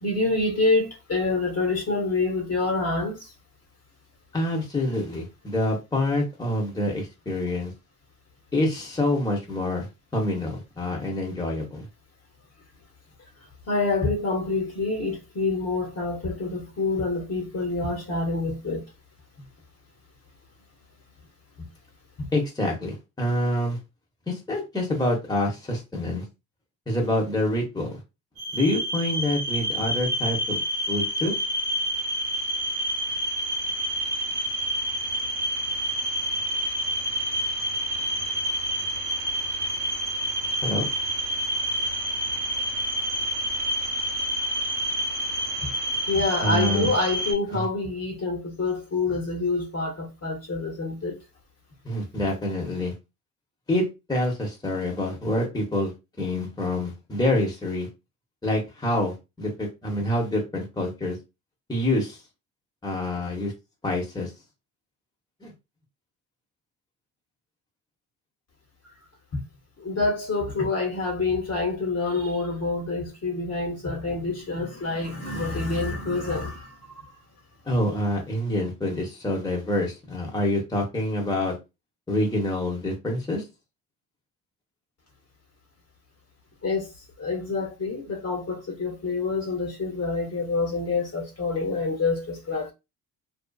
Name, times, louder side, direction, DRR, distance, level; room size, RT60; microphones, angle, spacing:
voice 1, 0.0-3.3 13.7-18.8 46.1-51.2 69.8-77.0 86.6-86.9 87.2-92.7, left 3 dB, 35° left, 1.1 m, -27 dB
voice 2, 4.3-7.7 8.5-11.8 22.3-23.8 24.3-26.2 26.9-28.0 28.5-30.6 30.9-31.3 40.6-40.9 46.4-46.9 47.5-47.6 51.8-52.9 53.7-55.9 56.2-57.9 58.4-61.2 61.7-62.2 62.8-63.5 63.8-64.3 65.4-65.5 77.6-81.6 82.1-83.4, left 1 dB, 10° left, 1.0 m, -26 dB
sound 1, 28.4-47.3, equal, 80° right, 1.0 m, -28 dB
2.6 x 2.3 x 2.3 m
supercardioid pair, 60°, 41 cm